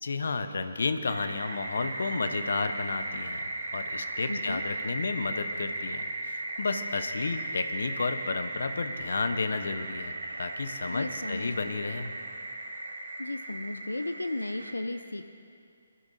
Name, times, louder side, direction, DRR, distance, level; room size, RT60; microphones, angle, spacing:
voice 1, 0.0-12.1, left 4 dB, 60° left, 8 dB, 0.9 m, -32 dB
sound 1, 1.0-14.7, right 2 dB, 70° right, 2.0 m, -37 dB
voice 2, 4.3-4.6 10.9-11.7 13.2-15.3, left 2 dB, 80° left, 8 dB, 0.6 m, -35 dB
26.0 x 14.0 x 2.7 m, 2.3 s
figure-of-eight pair, 140°, 0 cm